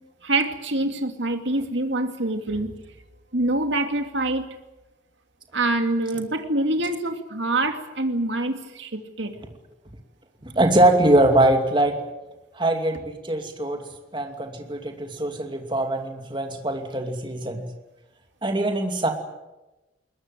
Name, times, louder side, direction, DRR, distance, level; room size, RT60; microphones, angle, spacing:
voice 1, 0.2-2.8 3.3-4.5 5.5-9.4, right 2 dB, 65° right, 6 dB, 2.6 m, -25 dB
voice 2, 10.4-12.0 12.5-13.8 14.1-17.6 18.4-19.1, right 1 dB, 25° right, 5 dB, 2.6 m, -22 dB
21.0 x 21.0 x 9.3 m, 1.0 s
head